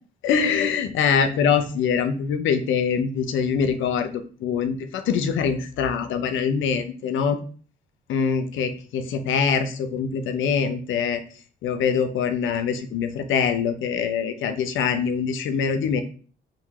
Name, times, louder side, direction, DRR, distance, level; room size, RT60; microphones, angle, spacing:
voice 1, 0.2-7.4 8.1-11.2 11.6-16.0, left 6 dB, 75° left, 8 dB, 0.7 m, -24 dB
3.8 x 2.7 x 4.6 m, 0.41 s
cardioid pair, 90°, 20 cm